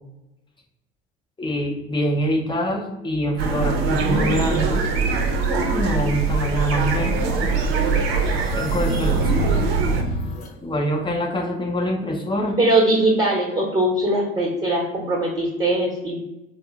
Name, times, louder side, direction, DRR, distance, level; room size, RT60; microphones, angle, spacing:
voice 1, 1.4-4.9 5.7-7.2 8.5-9.5 10.6-12.6, equal, 15° left, 1 dB, 0.7 m, -25 dB
sound 1, 3.4-10.0, right 4 dB, 75° right, 0.6 m, -22 dB
sound 2, 6.7-10.5, left 3 dB, 85° left, 0.7 m, -30 dB
voice 2, 12.6-16.2, right 1 dB, 20° right, -3 dB, 0.9 m, -21 dB
2.7 x 2.0 x 3.4 m, 0.95 s
hypercardioid pair, 65°, 30 cm